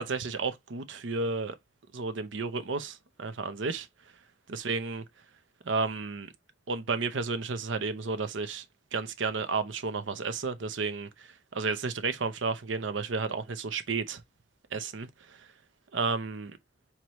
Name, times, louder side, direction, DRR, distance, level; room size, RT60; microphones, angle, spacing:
voice 1, 0.0-1.6 1.9-3.9 4.5-5.0 5.6-6.3 6.7-8.6 8.9-14.2 14.7-15.5 15.9-16.6, right 4 dB, 85° right, 0.7 m, -32 dB
4.7 x 2.9 x 2.9 m
head